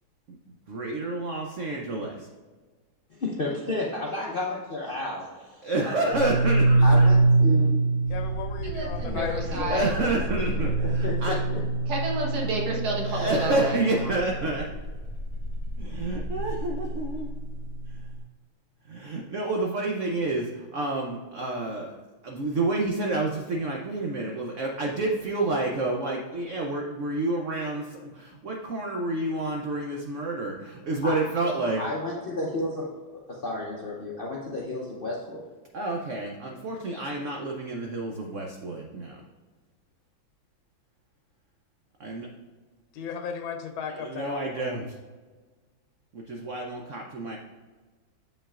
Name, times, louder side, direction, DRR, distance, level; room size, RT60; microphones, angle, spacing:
voice 1, 0.7-2.3 5.6-7.1 9.4-11.4 13.0-14.7 15.8-17.3 18.8-22.0 22.2-31.8 35.7-39.2 42.0-42.3 43.9-45.0 46.1-47.4, right 2 dB, 85° right, 0 dB, 0.6 m, -29 dB
voice 2, 3.1-6.2 6.8-7.7 10.5-11.6 31.0-31.2 31.8-32.9 33.1-35.5, left 2 dB, 65° left, -4 dB, 0.5 m, -32 dB
sound 1, 6.1-18.0, right 2 dB, 40° right, 0.4 m, -25 dB
voice 3, 8.1-10.2 42.9-44.7, left 7 dB, 85° left, 6 dB, 1.5 m, -35 dB
voice 4, 8.6-9.9 11.9-14.2, right 2 dB, 55° right, -1 dB, 1.7 m, -30 dB
7.4 x 5.5 x 2.4 m, 1.4 s
omnidirectional pair, 2.1 m